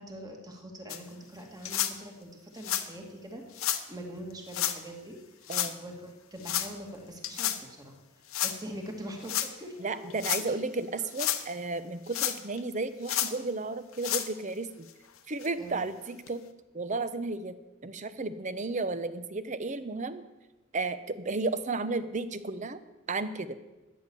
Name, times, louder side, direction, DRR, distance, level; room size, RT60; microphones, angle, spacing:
voice 1, 0.0-10.1 10.4-10.6 15.6-15.8, equal, 20° right, 2 dB, 1.9 m, -44 dB
sound 1, 0.9-1.0 1.6-1.9 2.6-2.9 3.5-3.8 4.5-4.8 5.5-5.7 6.4-6.7 7.2-7.6 8.3-8.6 9.2-9.5 10.1-10.4 11.0-11.4 12.1-12.6 13.0-13.3 13.9-14.3 14.9-15.0 15.4-15.5 16.3-16.4, left 11 dB, 80° left, 1.0 m, -30 dB
voice 2, 9.8-14.9 15.3-16.4 16.7-17.5 17.8-20.2 20.7-22.8 23.1-23.6, right 3 dB, 35° right, 13 dB, 0.7 m, -33 dB
13.5 x 9.9 x 7.0 m, 1.1 s
head